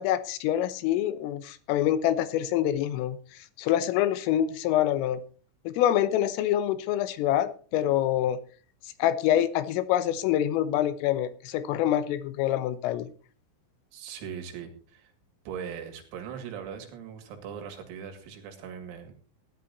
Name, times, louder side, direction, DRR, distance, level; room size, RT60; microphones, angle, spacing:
voice 1, 0.0-3.2 3.6-5.2 5.7-8.4 9.0-13.1, left 11 dB, 80° left, 13 dB, 3.4 m, -26 dB
voice 2, 13.9-15.1 15.5-19.1, right 7 dB, 90° right, 5 dB, 5.1 m, -40 dB
15.5 x 11.0 x 4.1 m, 0.39 s
omnidirectional pair, 6.0 m